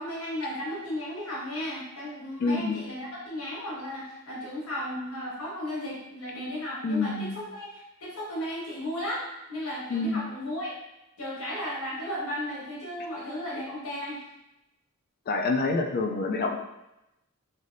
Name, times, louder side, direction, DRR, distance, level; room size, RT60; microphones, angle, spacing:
voice 1, 0.0-9.2 9.5-10.7 11.2-14.2, left 1 dB, 80° left, -7 dB, 1.4 m, -35 dB
voice 2, 2.4-2.8 6.8-7.4 9.9-10.2 15.3-16.6, left 3 dB, 45° left, 3 dB, 0.3 m, -27 dB
3.3 x 2.6 x 2.5 m, 0.91 s
head